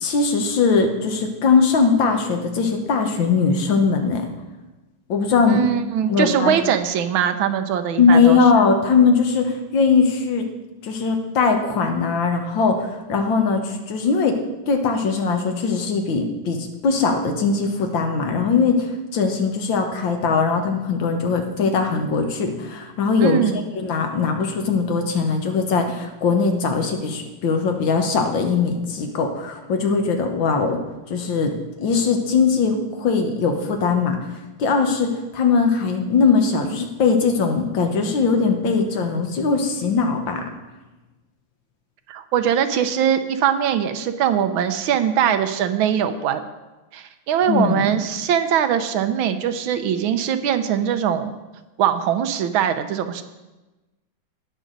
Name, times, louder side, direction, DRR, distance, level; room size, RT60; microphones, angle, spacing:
voice 1, 0.0-4.3 5.1-5.6 6.1-6.5 8.0-10.4 10.8-14.4 14.7-30.8 31.1-31.5 31.8-34.2 34.6-40.4 47.5-47.9, left 5 dB, 75° left, 4 dB, 1.9 m, -20 dB
voice 2, 5.5-8.4 23.2-23.6 42.1-46.4 46.9-51.3 51.8-53.2, right 9 dB, 85° right, 9 dB, 1.6 m, -21 dB
18.5 x 6.4 x 4.0 m, 1.1 s
omnidirectional pair, 2.2 m